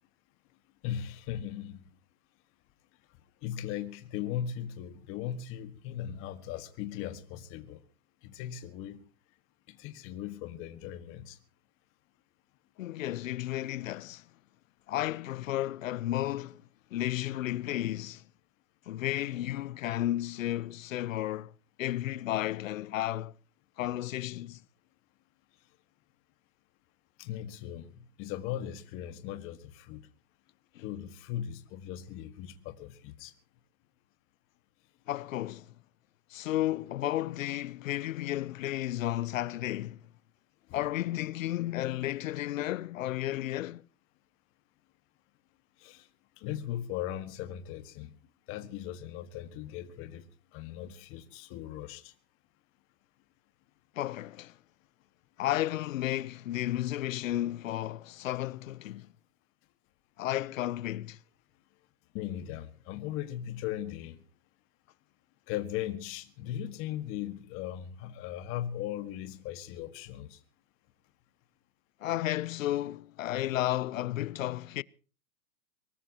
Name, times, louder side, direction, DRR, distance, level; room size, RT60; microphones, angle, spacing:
voice 1, 0.8-1.9 3.4-7.8 8.2-9.0 9.7-11.4 27.2-30.1 30.8-33.3 45.8-46.1 46.4-48.1 48.5-50.2 50.5-52.1 62.1-64.2 65.5-70.4, left 11 dB, 30° left, 1.7 m, -38 dB
voice 2, 12.8-14.3 14.9-16.6 16.9-18.2 18.9-21.5 21.8-23.3 23.8-24.6 30.7-30.8 35.1-35.7 36.3-40.1 40.7-43.8 53.9-54.6 55.4-59.1 60.2-61.2 72.0-74.8, left 14 dB, 60° left, 0.8 m, -33 dB
23.0 x 19.5 x 3.0 m
hypercardioid pair, 145°, 44 cm